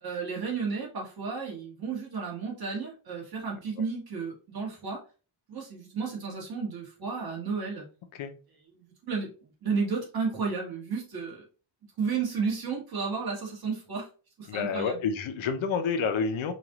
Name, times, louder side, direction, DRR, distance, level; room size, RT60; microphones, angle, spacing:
voice 1, 0.0-5.0 5.5-7.9 8.7-9.3 9.6-11.4 12.0-14.1 14.4-15.1, right 5 dB, 50° right, 1.8 m, -32 dB
voice 2, 14.5-16.5, left 5 dB, 80° left, 0.8 m, -29 dB
5.1 x 2.5 x 3.0 m
wide cardioid pair, 125°, 47 cm